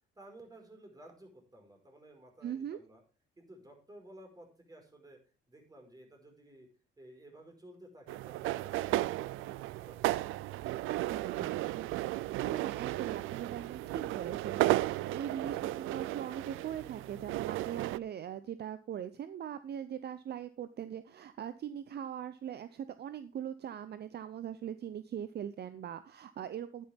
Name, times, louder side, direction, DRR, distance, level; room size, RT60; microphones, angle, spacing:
voice 1, 0.2-3.0 3.4-5.2 5.5-6.7 7.0-9.6, right 1 dB, 20° right, 2 dB, 5.0 m, -55 dB
voice 2, 2.4-2.8 10.9-11.9 12.4-26.8, right 9 dB, 55° right, 12 dB, 0.7 m, -41 dB
sound 1, 8.1-18.0, right 16 dB, 90° right, 0.4 m, -34 dB
11.0 x 10.0 x 3.5 m, 0.35 s
cardioid pair, 90°, 20 cm